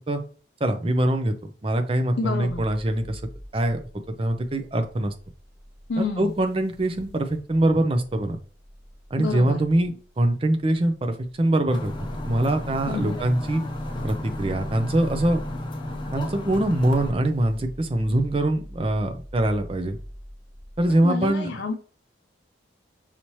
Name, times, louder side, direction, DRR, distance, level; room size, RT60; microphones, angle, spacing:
voice 1, 0.6-3.2 3.5-3.8 4.2-5.1 6.0-8.4 9.1-11.9 12.2-13.6 14.0-15.4 16.1-20.0 20.8-21.5, right 1 dB, 30° right, 6 dB, 0.5 m, -23 dB
voice 2, 2.2-2.6 5.9-6.3 9.2-9.6 12.9-13.2 20.9-21.7, left 3 dB, 75° left, 3 dB, 0.5 m, -29 dB
sound 1, 2.4-21.1, equal, 80° right, 2.4 m, -46 dB
sound 2, 11.7-17.1, left 1 dB, 25° left, 0.6 m, -32 dB
5.6 x 2.8 x 3.1 m, 0.40 s
head